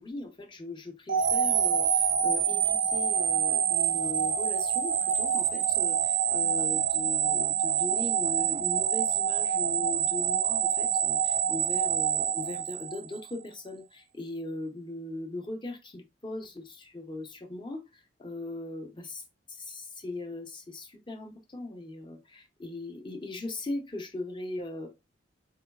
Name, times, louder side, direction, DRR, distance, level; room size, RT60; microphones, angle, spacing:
voice 1, 0.0-24.9, left 2 dB, 25° left, 0.7 m, -39 dB
sound 1, 1.1-13.3, right 8 dB, 85° right, 0.5 m, -26 dB
3.9 x 3.3 x 2.3 m
head